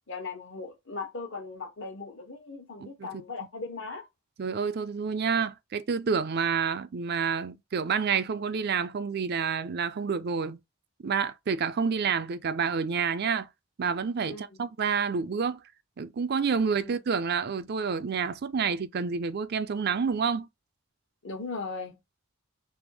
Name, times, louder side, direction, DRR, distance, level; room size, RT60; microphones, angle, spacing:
voice 1, 0.1-4.1 14.3-14.6 16.8-17.0 21.2-22.0, left 4 dB, 60° left, 1.2 m, -38 dB
voice 2, 4.4-10.6 11.0-13.5 13.8-15.6 16.0-20.5, right 6 dB, 50° right, 0.4 m, -28 dB
3.5 x 2.8 x 4.7 m
head